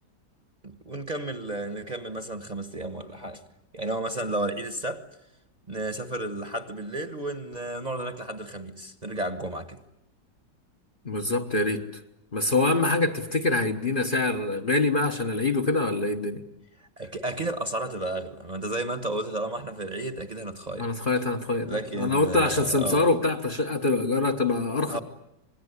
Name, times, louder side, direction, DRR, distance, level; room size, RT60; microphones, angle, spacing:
voice 1, 0.6-3.4 3.7-5.1 5.7-9.8 16.8-20.9 21.6-23.1 24.9-25.0, right 2 dB, 25° right, 1.4 m, -32 dB
voice 2, 11.0-11.8 12.3-16.4 20.8-25.0, left 2 dB, 35° left, 1.3 m, -25 dB
27.0 x 20.5 x 9.8 m
omnidirectional pair, 1.9 m